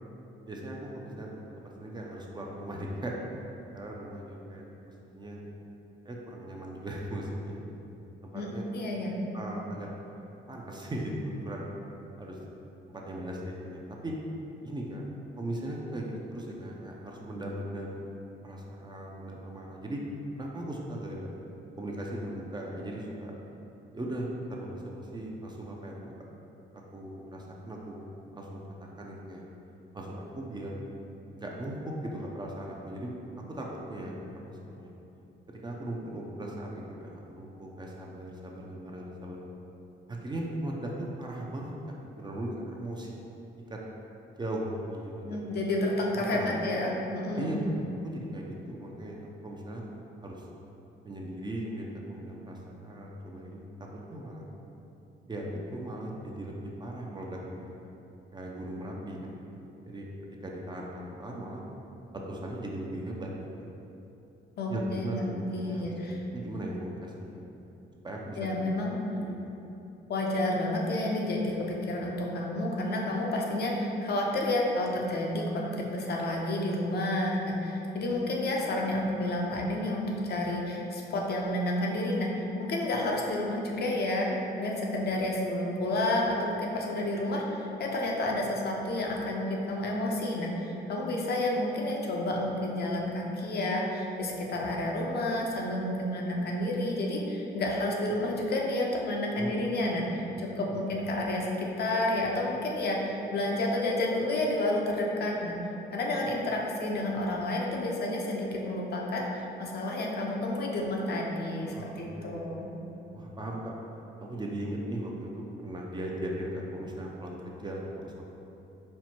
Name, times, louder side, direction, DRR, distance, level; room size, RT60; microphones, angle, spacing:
voice 1, 0.5-3.2 3.7-4.6 5.1-5.4 6.0-7.6 8.2-8.6 9.3-9.9 10.5-11.7 12.2-12.4 12.9-14.2 14.6-15.0 15.4-18.0 18.4-20.0 20.4-21.3 21.8-23.3 23.9-26.0 26.7-29.4 29.9-30.9 31.3-33.1 33.5-34.9 35.5-39.4 40.1-43.1 43.7-43.8 44.4-45.6 46.3-46.6 47.4-47.7 48.0-49.2 49.4-50.5 51.0-54.4 55.3-57.7 58.3-59.4 59.9-60.1 60.4-61.6 62.1-63.3 63.6-63.7 64.7-67.4 68.0-68.7 69.1-69.3 99.4-99.8 100.7-100.8 111.7-112.7 113.1-113.7 114.2-118.2, right 1 dB, 20° right, -2 dB, 0.5 m, -38 dB
voice 2, 8.3-9.2 45.3-47.6 64.6-66.2 68.4-69.0 70.1-82.3 82.6-84.3 84.6-105.6 105.9-112.7, left 1 dB, 55° left, -1 dB, 0.6 m, -30 dB
4.3 x 2.0 x 4.3 m, 2.9 s
cardioid pair, 90°, 20 cm